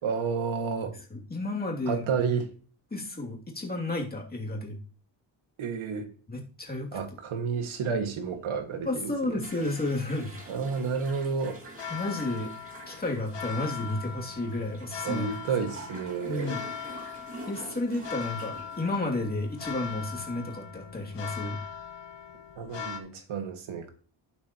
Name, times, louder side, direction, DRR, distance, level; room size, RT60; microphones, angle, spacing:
voice 1, 0.0-0.9 1.9-2.5 5.6-6.1 6.9-9.4 10.5-11.6 15.0-16.6 22.6-23.9, right 5 dB, 90° right, 2.1 m, -31 dB
voice 2, 1.1-2.1 2.9-4.8 6.3-6.9 8.8-10.4 11.9-12.5 12.9-15.3 16.3-16.6 17.5-21.6, left 2 dB, 20° left, 2.7 m, -32 dB
sound 1, 6.7-23.0, left 7 dB, 65° left, 1.4 m, -41 dB
sound 2, 9.4-20.0, right 2 dB, 30° right, 2.3 m, -47 dB
11.5 x 9.6 x 3.0 m
wide cardioid pair, 150°, 47 cm